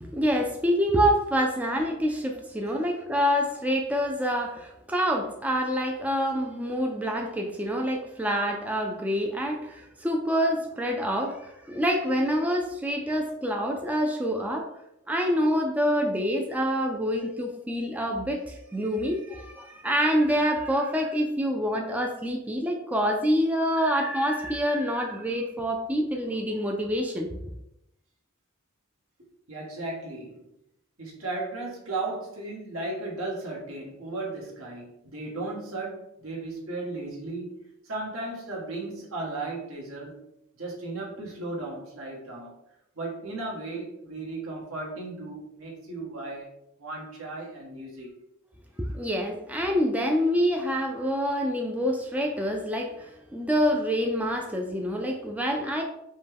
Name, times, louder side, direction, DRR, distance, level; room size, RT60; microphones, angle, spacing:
voice 1, 0.0-14.7 15.1-27.3 48.8-55.8, equal, 5° right, 1 dB, 0.3 m, -26 dB
voice 2, 29.5-30.4 31.0-40.2 40.6-42.5 42.9-46.5 46.8-48.1, right 2 dB, 70° right, -3 dB, 1.3 m, -35 dB
5.2 x 2.2 x 3.4 m, 0.82 s
head